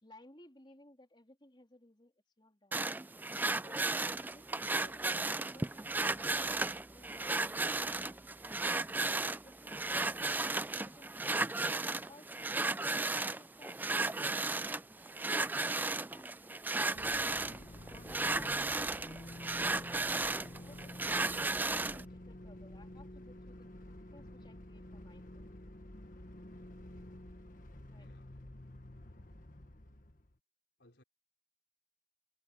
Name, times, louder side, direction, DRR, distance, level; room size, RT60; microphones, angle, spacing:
voice 1, 0.0-3.1 3.5-3.8 4.1-8.5 9.3-11.4 11.8-17.2 17.6-20.1 20.6-23.7 24.1-25.5 27.9-28.1, left 1 dB, 25° left, 3.6 m, -60 dB
sound 1, 2.7-22.0, right 3 dB, 10° right, 0.3 m, -35 dB
sound 2, 16.9-30.4, left 1 dB, 45° left, 1.4 m, -50 dB
voice 2, 28.0-28.4 30.8-31.0, left 1 dB, 65° left, 4.1 m, -67 dB
head